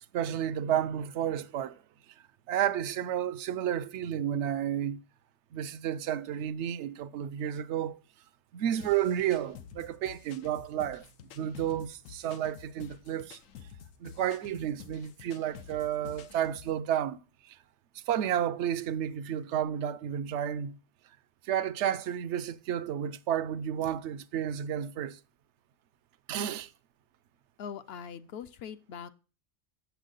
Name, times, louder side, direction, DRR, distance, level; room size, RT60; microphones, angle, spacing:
voice 1, 0.1-1.8 2.5-5.0 5.5-8.0 8.5-11.0 11.4-13.4 14.0-17.2 18.1-20.8 21.5-25.2 26.3-26.7, right 10 dB, 70° right, 0.8 m, -31 dB
sound 1, 8.8-16.8, left 8 dB, 90° left, 1.1 m, -50 dB
voice 2, 27.6-29.1, left 7 dB, 60° left, 0.7 m, -42 dB
8.2 x 7.0 x 3.8 m
omnidirectional pair, 1.3 m